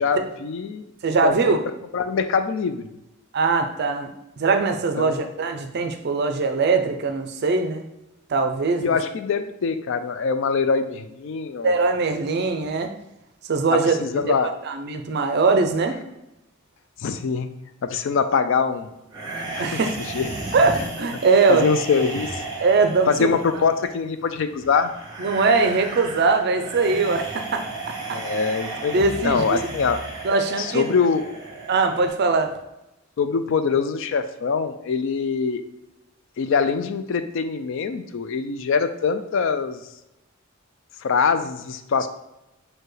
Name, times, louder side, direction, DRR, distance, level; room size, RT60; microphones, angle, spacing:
voice 1, 0.0-0.9 1.2-1.4 1.9-2.9 5.0-5.2 8.8-11.7 13.7-14.5 17.0-17.5 17.8-18.9 19.6-19.8 20.1-20.3 21.5-22.4 23.1-24.9 28.1-29.0 29.2-30.0 30.6-31.4 33.2-35.6 36.4-39.8 41.0-42.1, left 5 dB, 60° left, 10 dB, 0.4 m, -23 dB
voice 2, 1.0-1.6 3.3-4.1 4.4-7.9 8.3-9.0 11.6-12.9 13.5-14.0 14.3-16.0 19.6-19.9 20.5-21.7 22.6-23.3 25.2-27.6 28.9-29.7 30.2-30.9 31.7-32.5, right 4 dB, 50° right, 7 dB, 0.4 m, -21 dB
sound 1, 19.1-32.1, right 2 dB, 20° right, 1.3 m, -34 dB
6.7 x 2.2 x 3.2 m, 0.92 s
head